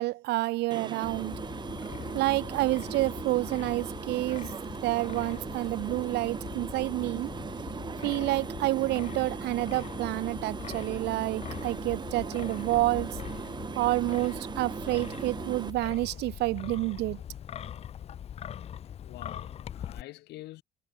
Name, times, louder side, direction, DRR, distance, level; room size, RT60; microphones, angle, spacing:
voice 1, 0.0-1.3 2.1-4.5 4.8-7.3 8.0-13.2 13.7-17.2, right 19 dB, 80° right, 0.6 m, -29 dB
sound 1, 0.7-15.7, right 5 dB, 25° right, 1.0 m, -39 dB
Wind, 1.0-20.0, left 9 dB, 40° left, 0.4 m, -42 dB
voice 2, 19.0-20.6, left 17 dB, 80° left, 2.0 m, -46 dB
cardioid pair, 110°, 17 cm